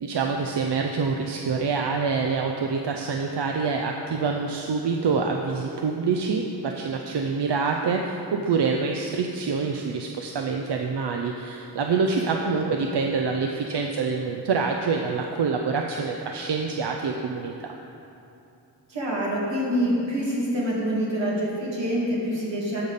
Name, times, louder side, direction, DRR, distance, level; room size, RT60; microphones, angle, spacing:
voice 1, 0.0-17.7, right 5 dB, 70° right, 2 dB, 0.6 m, -26 dB
voice 2, 18.9-22.9, equal, 85° right, -6 dB, 2.3 m, -26 dB
13.5 x 5.2 x 4.1 m, 2.8 s
cardioid pair, 55°, 43 cm